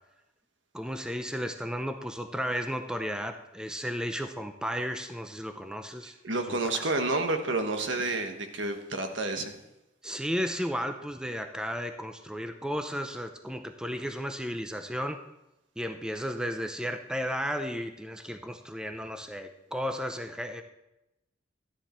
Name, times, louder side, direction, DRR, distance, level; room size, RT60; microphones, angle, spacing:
voice 1, 0.7-6.1 6.5-6.9 10.0-15.2 15.8-20.6, equal, 5° right, 7 dB, 0.6 m, -34 dB
voice 2, 6.2-9.5, right 2 dB, 70° right, 6 dB, 1.3 m, -29 dB
13.0 x 10.0 x 4.4 m, 0.93 s
head